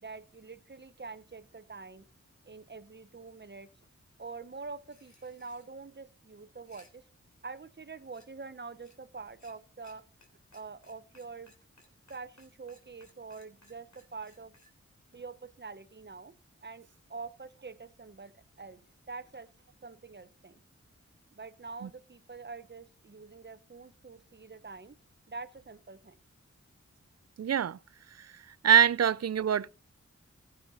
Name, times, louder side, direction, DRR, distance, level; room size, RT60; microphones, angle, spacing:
voice 1, 0.0-2.1 2.4-3.7 4.2-7.0 7.4-10.0 10.5-11.5 12.1-14.5 15.1-16.3 16.6-18.8 19.1-19.5 19.8-20.6 21.3-25.0 25.3-26.2, right 4 dB, 35° right, 0.8 m, -45 dB
sound 1, 4.9-5.7 6.5-6.9 8.1-8.3 8.8-9.0 9.3-9.5 9.8-9.9 10.2-10.3 10.5-14.7, left 2 dB, 70° left, 3.3 m, -61 dB
voice 2, 27.4-27.8 28.6-29.7, right 8 dB, 60° right, 0.4 m, -23 dB
15.5 x 7.2 x 4.1 m
wide cardioid pair, 45°, 29 cm